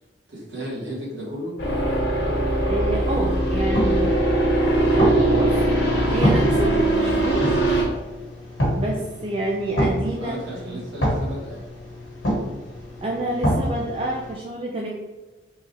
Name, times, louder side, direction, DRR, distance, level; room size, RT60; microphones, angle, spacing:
voice 1, 0.3-1.6 10.1-11.7, equal, 60° right, -5 dB, 1.4 m, -34 dB
sound 1, 1.6-7.8, right 1 dB, 55° left, 0.8 m, -21 dB
voice 2, 2.6-4.2 4.8-5.6 6.1-7.5 8.8-10.4 10.7-10.8 13.0-14.9, right 2 dB, 30° right, -2 dB, 0.3 m, -27 dB
sound 2, 3.6-14.3, equal, 75° left, 1.2 m, -27 dB
3.7 x 3.1 x 2.7 m, 1.2 s
head